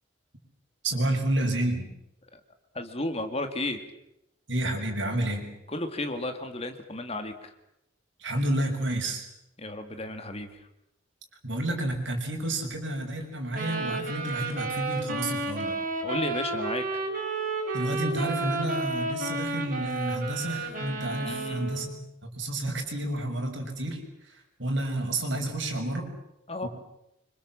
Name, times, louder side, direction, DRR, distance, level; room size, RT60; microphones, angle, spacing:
voice 1, 0.8-1.9 4.5-5.5 8.2-9.3 11.4-15.7 17.7-21.9 22.4-24.0 24.6-26.1 26.6-26.7, right 1 dB, 65° right, 2 dB, 6.2 m, -30 dB
voice 2, 2.7-3.8 5.7-7.5 9.6-10.5 16.0-17.0 21.2-21.7 26.5-26.7, left 2 dB, 30° left, 7 dB, 2.3 m, -33 dB
sound 1, 13.5-21.9, right 3 dB, 45° right, 6.3 m, -32 dB
26.5 x 25.0 x 7.6 m, 0.84 s
head